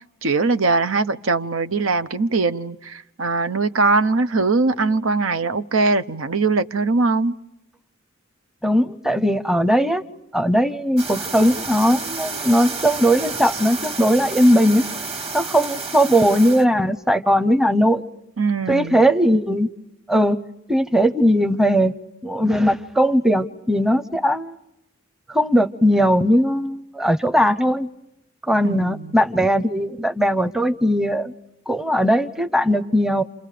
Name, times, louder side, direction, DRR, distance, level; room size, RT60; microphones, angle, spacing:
voice 1, 0.2-7.3 18.4-19.0 28.6-29.1, right 3 dB, 85° right, 10 dB, 0.9 m, -21 dB
voice 2, 8.6-10.0 10.3-14.8 15.3-18.0 18.7-19.7 20.1-20.4 20.7-21.9 22.2-24.5 25.3-27.9 28.5-31.3 31.7-33.2, equal, 5° right, 11 dB, 0.8 m, -18 dB
sound 1, 11.0-16.6, right 4 dB, 30° right, 1.8 m, -30 dB
28.5 x 28.5 x 5.1 m, 0.85 s
head